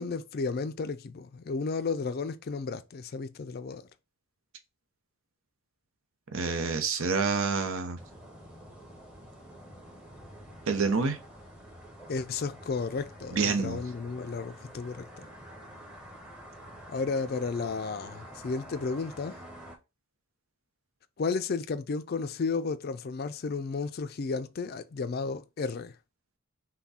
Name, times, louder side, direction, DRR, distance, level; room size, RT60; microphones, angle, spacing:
voice 1, 0.0-3.9 12.1-15.3 16.9-19.4 21.2-25.9, left 4 dB, 45° left, 0.4 m, -33 dB
voice 2, 6.3-8.0 10.7-11.2 13.3-13.8, right 4 dB, 70° right, 0.8 m, -27 dB
sound 1, 8.0-19.8, equal, 5° right, 1.0 m, -48 dB
5.8 x 2.2 x 4.1 m
head